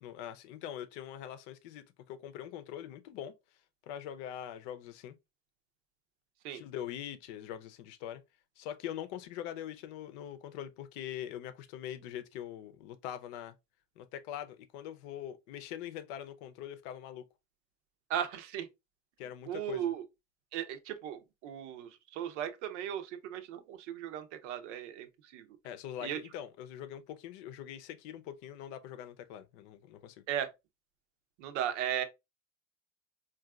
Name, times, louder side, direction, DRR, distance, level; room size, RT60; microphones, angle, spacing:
voice 1, 0.0-3.4 3.9-5.2 6.5-8.2 8.6-13.5 14.0-17.2 19.2-19.9 25.6-30.2, left 10 dB, 65° left, 0.7 m, -43 dB
voice 2, 18.1-18.7 19.5-20.0 20.5-25.4 26.0-26.2 30.3-30.5 31.4-32.0, right 10 dB, 70° right, 0.7 m, -36 dB
3.9 x 2.4 x 2.3 m
hypercardioid pair, 95°, 37 cm